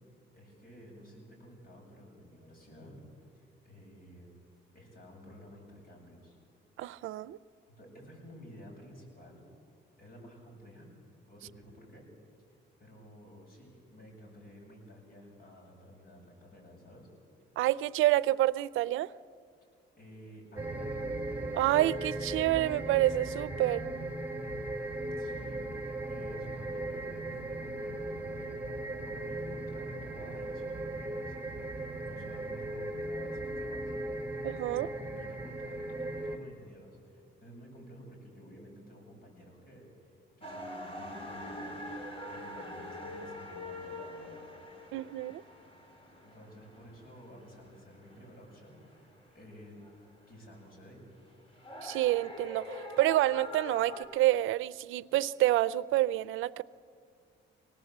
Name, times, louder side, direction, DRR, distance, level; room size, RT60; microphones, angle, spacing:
voice 1, 0.3-3.0 3.3-4.3 4.7-6.4 7.7-9.4 10.0-10.9 11.3-12.1 12.8-17.1 20.0-21.0 25.2-28.6 29.1-33.9 34.6-44.9 45.3-45.4 46.2-49.8 50.3-51.0, equal, 50° left, 7.9 m, -52 dB
voice 2, 6.8-7.4 17.6-19.1 21.5-23.8 34.4-34.9 44.9-45.4 51.8-56.6, right 15 dB, 85° right, 0.5 m, -28 dB
sound 1, 20.6-36.4, right 2 dB, 10° right, 2.5 m, -37 dB
sound 2, 40.4-54.0, left 1 dB, 30° left, 5.1 m, -45 dB
25.5 x 18.5 x 8.0 m
cardioid pair, 90°, 20 cm